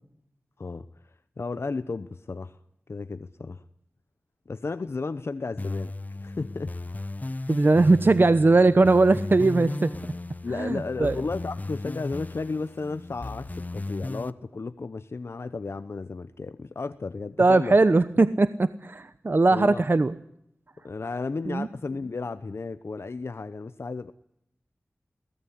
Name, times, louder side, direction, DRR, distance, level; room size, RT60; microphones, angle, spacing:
voice 1, 0.6-2.6 2.9-3.6 4.5-5.9 6.2-6.7 10.4-17.8 19.5-19.8 20.8-24.1, left 3 dB, 65° left, 12 dB, 0.9 m, -34 dB
sound 1, 5.6-14.3, left 2 dB, 35° left, 1.0 m, -35 dB
voice 2, 7.5-9.9 10.5-11.2 17.4-20.1 21.5-21.7, right 3 dB, 50° right, 13 dB, 0.9 m, -20 dB
23.0 x 18.0 x 9.6 m, 0.76 s
wide cardioid pair, 65°, 5 cm